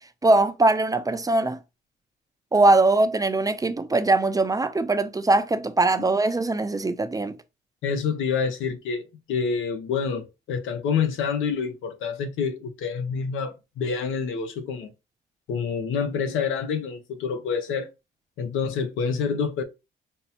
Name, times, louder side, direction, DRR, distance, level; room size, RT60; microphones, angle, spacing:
voice 1, 0.2-1.6 2.5-7.3, right 2 dB, 20° right, 0.5 m, -21 dB
voice 2, 7.8-14.9 15.5-17.9 18.4-19.6, left 6 dB, 85° left, 0.8 m, -27 dB
5.3 x 2.1 x 2.8 m
cardioid pair, 90°, 20 cm